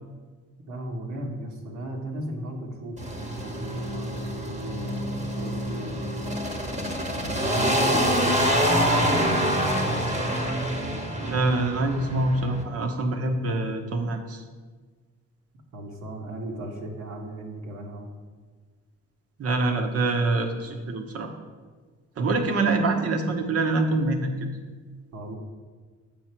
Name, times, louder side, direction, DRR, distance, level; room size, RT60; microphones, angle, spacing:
voice 1, 0.7-6.2 7.1-10.1 10.3-10.6 15.7-18.1 25.1-25.3, right 1 dB, 70° right, 0 dB, 1.3 m, -36 dB
sound 1, 3.0-12.6, equal, 20° right, 1.2 m, -26 dB
voice 2, 11.2-14.4 19.4-21.3 22.2-24.3, right 2 dB, 50° right, 5 dB, 1.1 m, -25 dB
7.4 x 5.6 x 4.5 m, 1.4 s
cardioid pair, 90°, 30 cm